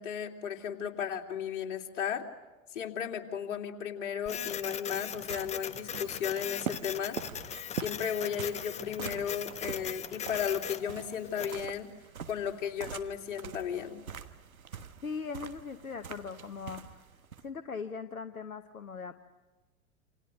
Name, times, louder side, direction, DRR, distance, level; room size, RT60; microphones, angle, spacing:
voice 1, 0.0-2.2 2.7-7.2 7.8-11.9 12.3-14.0, left 8 dB, 60° left, 2 dB, 3.0 m, -35 dB
Printer, 4.3-11.6, left 8 dB, 15° left, 0.7 m, -40 dB
sound 1, 4.5-17.5, right 7 dB, 80° right, 1.5 m, -44 dB
voice 2, 15.0-17.0 17.4-19.1, left 5 dB, 85° left, 8 dB, 1.1 m, -40 dB
28.5 x 27.0 x 6.5 m, 1.2 s
figure-of-eight pair, 95°, 42 cm